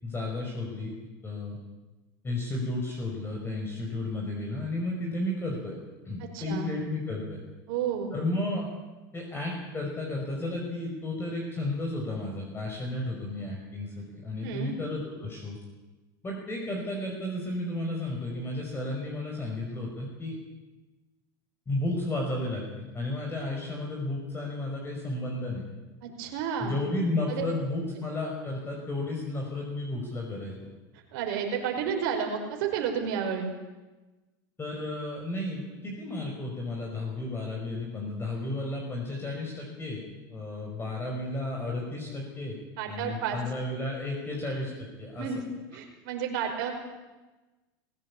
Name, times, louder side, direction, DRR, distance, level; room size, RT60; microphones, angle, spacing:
voice 1, 0.0-0.9 1.2-1.6 2.2-5.8 6.1-7.4 8.1-8.7 9.1-15.6 16.2-20.3 21.7-25.7 26.6-30.5 34.6-42.6 42.9-45.3, left 2 dB, 20° left, 0 dB, 5.5 m, -33 dB
voice 2, 6.2-6.7 7.7-8.1 14.4-14.7 26.0-26.8 27.3-27.5 31.1-33.5 42.8-43.4 45.2-45.4 45.7-46.7, right 7 dB, 70° right, 3 dB, 5.3 m, -31 dB
21.0 x 16.5 x 8.6 m, 1.2 s
supercardioid pair, 110°, 12 cm